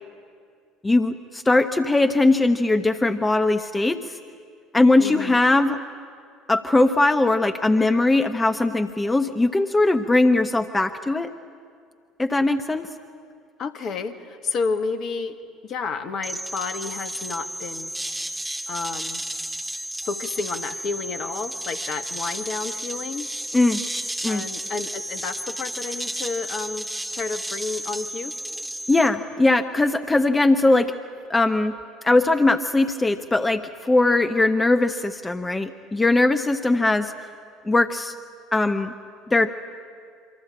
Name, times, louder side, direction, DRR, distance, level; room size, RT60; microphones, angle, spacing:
voice 1, 0.8-4.2 4.7-5.8 6.5-11.3 12.2-12.9 23.5-23.8 24.2-24.5 28.9-30.9 31.3-31.8 32.0-37.1 37.6-38.1 38.5-38.9 39.3-39.5, left 2 dB, 15° left, 8 dB, 1.1 m, -20 dB
voice 2, 5.0-5.4 13.6-18.0 18.7-19.2 20.0-23.3 24.3-28.3, left 4 dB, 45° left, 9 dB, 1.7 m, -31 dB
sound 1, 16.2-29.1, right 1 dB, 5° right, 2.8 m, -32 dB
27.0 x 24.5 x 8.6 m, 2.2 s
figure-of-eight pair, 60°, 0 cm